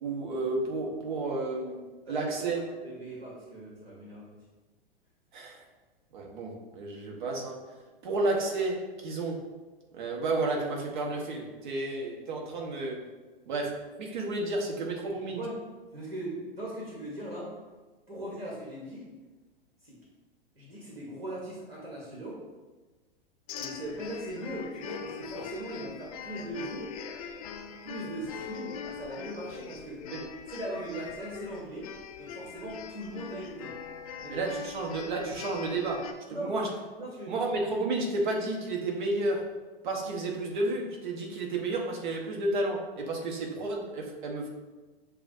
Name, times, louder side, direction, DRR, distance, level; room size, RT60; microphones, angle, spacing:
voice 1, 0.0-2.6 5.3-5.6 6.1-7.6 8.0-9.4 9.9-13.1 13.5-15.4 30.1-30.2 34.3-36.7 37.3-39.5 39.8-44.5, right 2 dB, 55° right, 0 dB, 0.9 m, -31 dB
voice 2, 2.0-4.4 15.1-15.6 15.9-17.5 18.1-19.1 19.8-20.0 20.5-22.4 23.6-26.9 27.8-30.0 30.5-33.8 34.2-34.4 36.3-36.6 36.9-37.4, right 1 dB, 75° right, -4 dB, 1.2 m, -39 dB
sound 1, 23.5-36.1, left 7 dB, 40° left, 0.4 m, -42 dB
6.8 x 2.3 x 2.6 m, 1.3 s
figure-of-eight pair, 100°, 30 cm